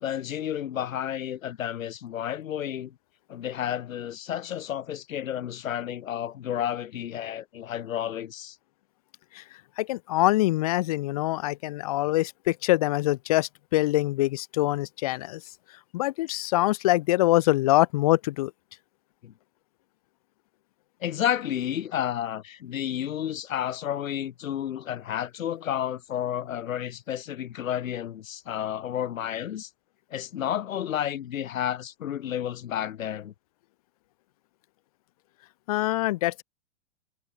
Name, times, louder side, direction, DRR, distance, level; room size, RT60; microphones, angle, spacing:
voice 1, 0.0-2.9 3.3-8.6 19.2-19.3 21.0-29.7 30.1-33.3, left 10 dB, 80° left, 2.6 m, -31 dB
voice 2, 9.8-15.4 15.9-18.5 35.7-36.4, left 17 dB, 30° left, 0.4 m, -24 dB
hypercardioid pair, 155°, 39 cm